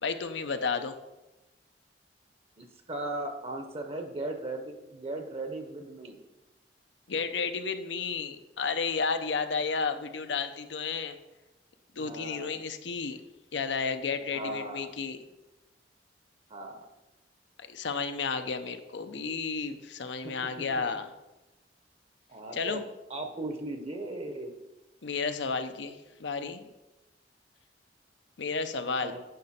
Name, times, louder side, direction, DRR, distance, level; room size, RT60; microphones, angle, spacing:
voice 1, 0.0-1.0 7.1-11.2 12.0-13.2 13.5-15.2 17.7-21.1 22.5-22.8 25.0-26.7 28.4-29.2, left 5 dB, 80° left, 8 dB, 0.7 m, -32 dB
voice 2, 2.6-6.2 12.0-12.6 14.3-14.9 16.5-16.9 22.3-22.8 23.1-24.5 29.0-29.2, right 2 dB, 35° right, 5 dB, 0.9 m, -37 dB
10.5 x 5.4 x 4.3 m, 1.0 s
head